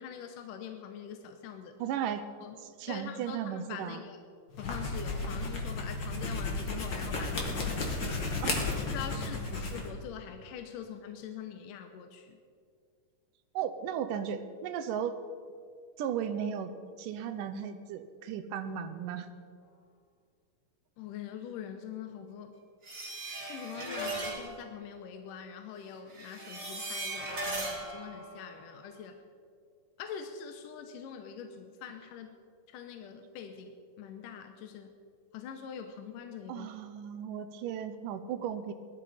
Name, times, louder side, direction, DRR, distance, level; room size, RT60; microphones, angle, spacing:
voice 1, 0.0-1.7 2.4-2.6 2.9-4.2 4.6-7.6 8.0-8.3 8.9-12.4 21.0-22.5 23.4-29.2 30.0-32.4 32.7-34.9 35.3-36.7, left 8 dB, 75° left, 6 dB, 2.4 m, -44 dB
voice 2, 1.8-2.3 2.6-4.0 8.4-9.6 13.5-15.2 16.0-19.3 36.5-38.7, right 8 dB, 80° right, 10 dB, 2.3 m, -36 dB
sound 1, 4.5-9.9, left 3 dB, 40° left, 2.2 m, -33 dB
sound 2, 22.8-24.5 26.1-29.0, right 2 dB, 20° right, 3.0 m, -38 dB
20.5 x 13.0 x 4.2 m, 2.2 s
omnidirectional pair, 3.9 m